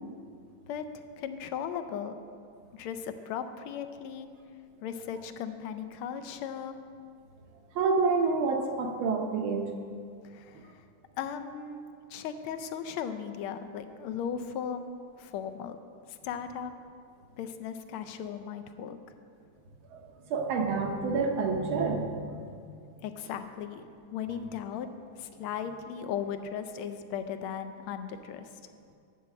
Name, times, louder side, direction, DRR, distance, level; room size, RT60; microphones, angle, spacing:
voice 1, 0.7-2.2 2.7-4.3 4.8-6.8 10.2-10.8 11.2-15.8 16.1-16.7 17.4-19.2 23.0-24.9 25.2-28.6, left 8 dB, 80° left, 9 dB, 1.4 m, -37 dB
voice 2, 7.8-9.7 19.9-20.0 20.3-22.5, right 4 dB, 75° right, 2 dB, 1.6 m, -28 dB
9.6 x 4.1 x 7.4 m, 2.2 s
omnidirectional pair, 2.4 m